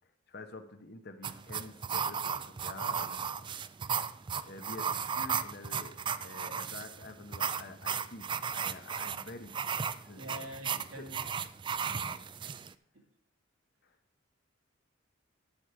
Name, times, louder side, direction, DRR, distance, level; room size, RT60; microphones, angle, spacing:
voice 1, 0.3-3.6 4.4-11.1 11.8-12.2 13.8-14.0, left 3 dB, 55° left, 8 dB, 1.0 m, -48 dB
sound 1, 1.2-12.7, right 7 dB, 25° right, 0.3 m, -35 dB
voice 2, 10.2-11.3, equal, 90° right, 0 dB, 2.6 m, -44 dB
11.5 x 4.9 x 6.1 m, 0.66 s
head